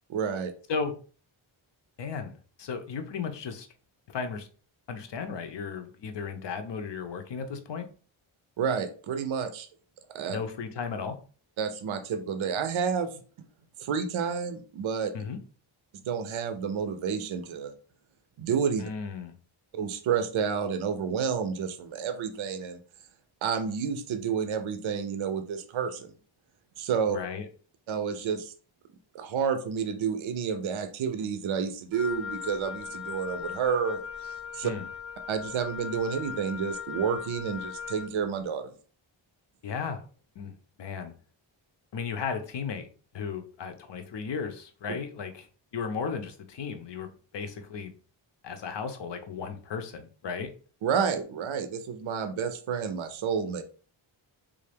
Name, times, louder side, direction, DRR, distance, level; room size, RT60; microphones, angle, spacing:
voice 1, 0.1-0.5 8.6-9.7 10.1-10.4 11.6-13.2 13.8-15.1 16.0-17.7 18.4-18.9 19.7-22.8 23.4-26.1 26.8-27.2 27.9-28.5 29.1-34.7 35.3-38.7 50.8-53.6, right 6 dB, 70° right, 8 dB, 0.6 m, -30 dB
voice 2, 2.0-3.7 4.1-4.5 4.9-7.9 10.3-11.2 15.1-15.4 18.8-19.3 27.1-27.5 34.6-34.9 39.6-40.0 40.4-41.1 41.9-42.9 43.1-45.5 45.7-47.9 48.4-50.5, left 5 dB, 60° left, 7 dB, 0.6 m, -35 dB
Wind instrument woodwind instrument, 31.9-38.2, left 7 dB, ahead, 0.7 m, -39 dB
3.4 x 2.5 x 3.3 m, 0.40 s
wide cardioid pair, 135°, 50 cm